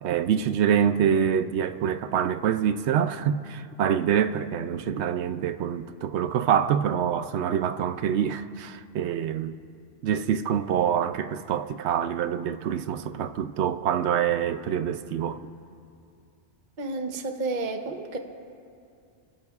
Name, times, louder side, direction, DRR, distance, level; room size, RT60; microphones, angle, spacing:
voice 1, 0.0-9.5 10.0-15.4, right 8 dB, 70° right, 0.8 m, -25 dB
voice 2, 16.8-18.2, right 3 dB, 45° right, 1.0 m, -31 dB
30.0 x 14.5 x 2.4 m
omnidirectional pair, 1.2 m